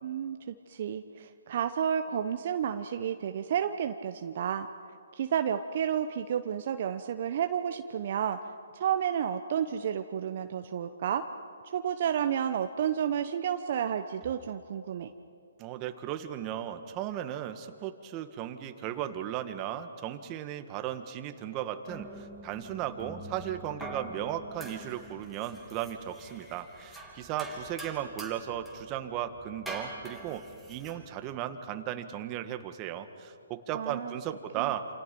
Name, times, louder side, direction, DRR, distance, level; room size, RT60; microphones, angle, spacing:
voice 1, 0.0-4.7 5.2-8.4 8.7-11.3 11.6-15.1 33.7-34.1 34.6-34.7, right 9 dB, 50° right, 7 dB, 0.9 m, -31 dB
voice 2, 15.6-30.4 30.7-34.9, right 11 dB, 25° right, 8 dB, 1.6 m, -36 dB
sound 1, 21.9-31.1, right 1 dB, ahead, 3.1 m, -45 dB
28.5 x 28.0 x 5.4 m, 2.5 s
hypercardioid pair, 140°, 0 cm